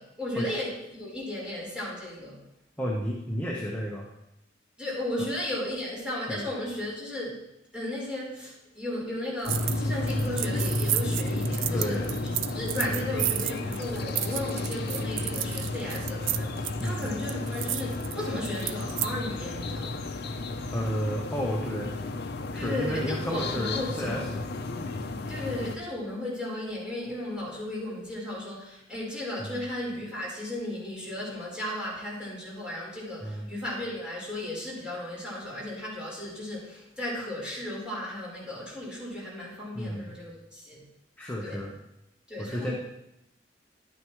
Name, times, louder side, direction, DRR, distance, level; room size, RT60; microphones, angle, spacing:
voice 1, 0.0-2.4 4.8-7.4 7.7-12.0 12.4-20.0 22.5-24.3 25.3-40.8 41.4-41.6 42.3-42.7, left 1 dB, 5° right, -7 dB, 4.0 m, -35 dB
voice 2, 2.8-4.1 5.2-5.3 6.3-6.5 10.1-10.2 11.7-12.1 16.8-17.1 20.7-22.0 22.5-24.5 29.4-29.6 33.2-33.5 39.7-40.1 41.2-41.7 42.4-42.7, equal, 10° left, -2 dB, 0.9 m, -32 dB
sound 1, 9.4-9.8 10.1-19.1, right 13 dB, 85° right, 0.4 m, -32 dB
sound 2, 9.5-25.8, left 2 dB, 60° left, 0.6 m, -32 dB
11.0 x 9.1 x 3.1 m, 0.85 s
head